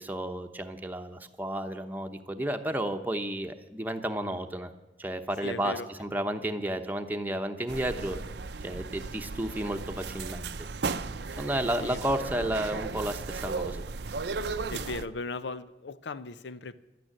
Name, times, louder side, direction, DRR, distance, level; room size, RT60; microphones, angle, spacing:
voice 1, 0.0-4.7 5.0-8.2 8.6-10.5 11.4-13.9, right 1 dB, 10° right, 5 dB, 0.9 m, -32 dB
voice 2, 5.4-5.9 11.8-12.0 14.7-16.8, left 3 dB, 80° left, 15 dB, 0.7 m, -37 dB
sound 1, 7.7-15.0, right 4 dB, 70° right, 0.6 m, -35 dB
12.0 x 9.3 x 10.0 m, 1.0 s
head